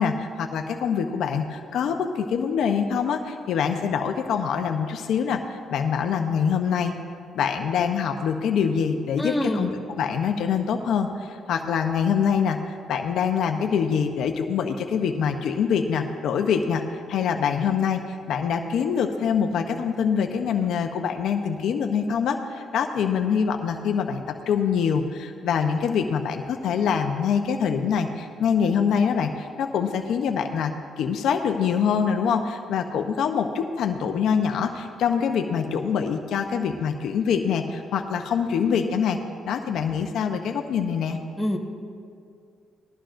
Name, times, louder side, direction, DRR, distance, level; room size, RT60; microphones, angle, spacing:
voice 1, 0.0-6.9 7.3-12.6 12.9-16.8 17.1-18.0 18.3-39.2 39.4-41.2, left 7 dB, 75° left, 5 dB, 0.7 m, -24 dB
voice 2, 9.2-9.7 41.4-41.6, left 1 dB, 5° left, 1 dB, 1.4 m, -25 dB
20.0 x 13.5 x 2.6 m, 2.3 s
cardioid pair, 90°, 0 cm